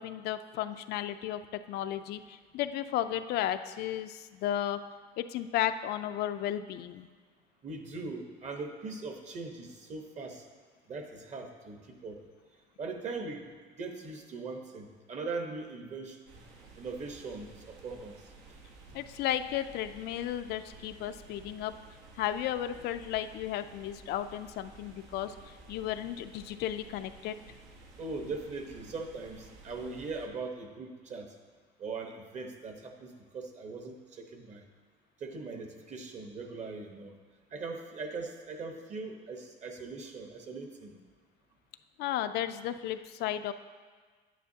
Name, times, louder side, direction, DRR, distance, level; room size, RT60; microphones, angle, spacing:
voice 1, 0.0-1.4 1.7-4.8 5.2-7.1 18.9-21.7 22.2-27.4 42.0-43.5, left 11 dB, 65° left, 10 dB, 0.4 m, -34 dB
voice 2, 7.6-10.4 10.9-12.2 12.8-13.5 13.8-16.4 16.8-18.2 28.0-31.3 31.8-34.6 35.2-37.1 37.5-41.0, right 3 dB, 40° right, 4 dB, 1.1 m, -40 dB
sound 1, 16.3-30.3, right 3 dB, 80° right, 1.1 m, -54 dB
9.4 x 9.1 x 2.8 m, 1.5 s
cardioid pair, 120°, 18 cm